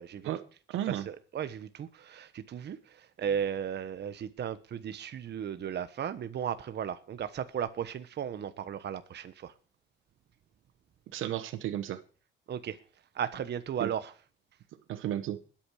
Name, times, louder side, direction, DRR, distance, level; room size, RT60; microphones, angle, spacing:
voice 1, 0.2-1.1 11.1-12.0 13.8-13.9 14.9-15.4, right 12 dB, 85° right, 1.0 m, -34 dB
voice 2, 0.8-9.5 12.5-12.8 13.1-14.1, right 8 dB, 60° right, 1.2 m, -35 dB
20.5 x 8.9 x 4.9 m
cardioid pair, 90°, 20 cm